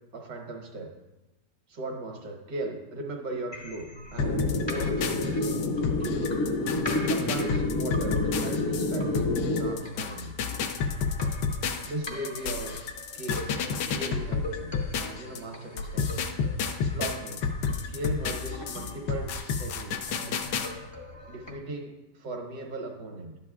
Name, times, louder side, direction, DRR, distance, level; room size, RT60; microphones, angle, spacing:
voice 1, 0.1-1.0 1.7-5.5 6.0-6.3 7.1-10.4 11.9-12.9 13.1-13.5 13.9-16.3 16.9-17.5 17.9-19.3 19.6-20.5 21.3-23.3, right 2 dB, 80° right, 2 dB, 1.8 m, -38 dB
sound 1, 3.5-21.5, left 1 dB, 25° left, 0.5 m, -43 dB
sound 2, 4.2-15.4 15.8-20.7, left 5 dB, 85° left, 1.3 m, -31 dB
sound 3, 4.2-9.7, left 2 dB, 50° left, 0.9 m, -28 dB
11.5 x 8.4 x 2.4 m, 1.0 s
omnidirectional pair, 1.8 m